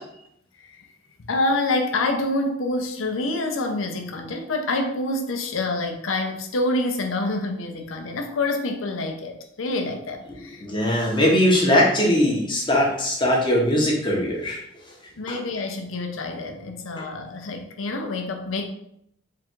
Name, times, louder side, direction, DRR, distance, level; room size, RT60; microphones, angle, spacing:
voice 1, 1.2-10.6 15.2-18.7, left 2 dB, 90° left, 4 dB, 0.6 m, -27 dB
voice 2, 10.6-14.6 15.3-15.4, left 1 dB, 25° left, -3 dB, 0.9 m, -20 dB
3.7 x 2.5 x 4.5 m, 0.75 s
head